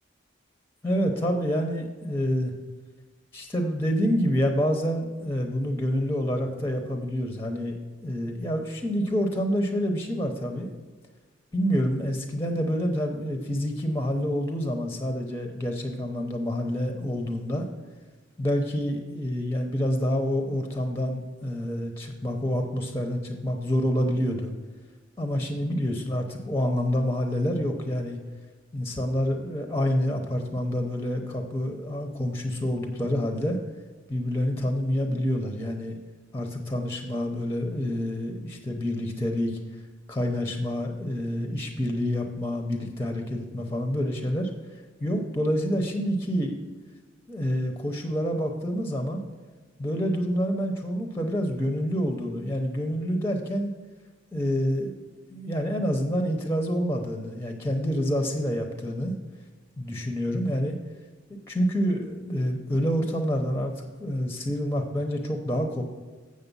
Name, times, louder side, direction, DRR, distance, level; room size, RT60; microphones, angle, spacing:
voice 1, 0.8-2.5 3.3-7.7 8.0-10.7 11.5-17.7 18.4-24.5 25.2-28.2 28.7-33.6 34.1-36.0 36.3-39.6 40.1-44.5 45.0-46.6 47.3-49.3 49.8-53.7 54.3-54.9 55.3-59.1 59.8-60.8 61.5-65.8, equal, 15° left, 4 dB, 0.7 m, -27 dB
8.0 x 6.6 x 5.4 m, 1.3 s
head